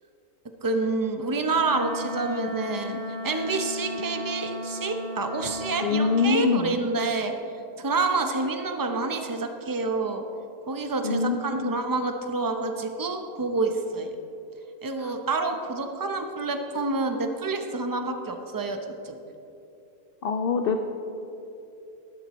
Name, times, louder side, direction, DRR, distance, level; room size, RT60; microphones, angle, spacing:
voice 1, 0.6-7.3 7.8-10.2 10.7-14.1 14.8-19.1, right 3 dB, 30° right, 5 dB, 0.3 m, -28 dB
Wind instrument woodwind instrument, 1.5-6.4, left 1 dB, 75° right, 1.4 m, -35 dB
voice 2, 5.8-6.7 11.0-11.7 15.0-15.1 20.2-20.8, left 4 dB, 65° left, 5 dB, 0.5 m, -24 dB
15.0 x 11.5 x 3.1 m, 2.8 s
omnidirectional pair, 1.6 m